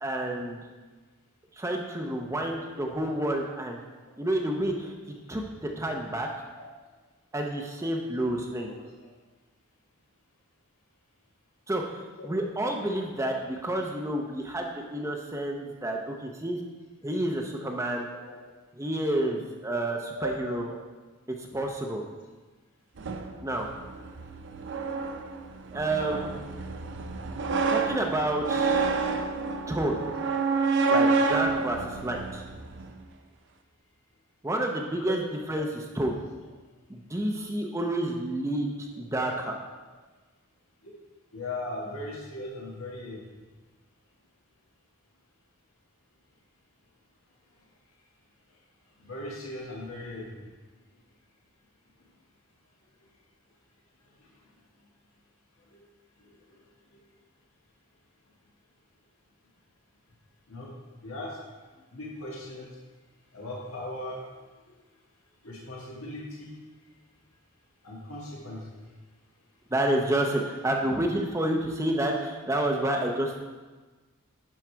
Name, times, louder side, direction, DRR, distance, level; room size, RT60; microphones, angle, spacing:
voice 1, 0.0-0.7 1.6-3.8 4.2-4.9 5.3-6.3 7.3-8.7 11.7-11.8 12.2-16.6 17.0-18.1 18.8-20.7 21.3-22.0 23.4-23.7 25.7-26.7 27.7-28.9 29.7-30.0 30.9-32.4 34.4-35.2 35.5-36.2 36.9-39.6 69.7-73.4, right 1 dB, 15° right, 1 dB, 0.7 m, -29 dB
voice 2, 3.0-3.3 6.6-6.7 8.7-8.8 12.2-12.3 18.3-18.4 19.7-19.8 20.1-20.4 35.5-35.6 40.8-40.9 41.3-43.2 49.0-50.3 55.7-55.8 56.2-56.6 60.5-60.7 61.0-61.4 61.9-62.7 63.3-64.2 65.4-66.5 67.8-68.7, left 1 dB, 85° left, -4 dB, 1.7 m, -38 dB
sound 1, 23.0-32.9, right 4 dB, 60° right, 0.6 m, -29 dB
11.0 x 4.9 x 4.5 m, 1.3 s
head